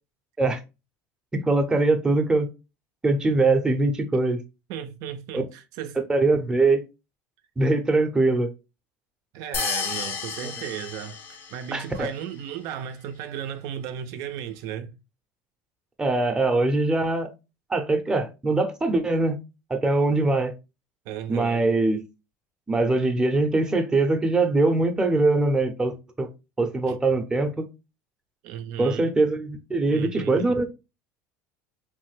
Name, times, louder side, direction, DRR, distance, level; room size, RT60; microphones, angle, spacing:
voice 1, 1.3-2.5 3.0-4.4 5.3-5.4 6.0-6.8 7.6-8.5 10.4-10.5 11.7-12.1 16.0-17.3 17.7-19.4 19.7-20.5 21.3-22.0 22.7-26.3 26.6-27.6 28.8-30.7, right 2 dB, 10° right, 0.5 m, -22 dB
voice 2, 4.7-6.0 9.3-14.9 21.1-21.7 26.9-27.0 28.4-29.1 29.9-30.6, right 9 dB, 65° right, 0.3 m, -35 dB
sound 1, 9.5-11.8, left 6 dB, 35° left, 0.5 m, -31 dB
3.1 x 2.1 x 3.1 m
supercardioid pair, 125°, 6 cm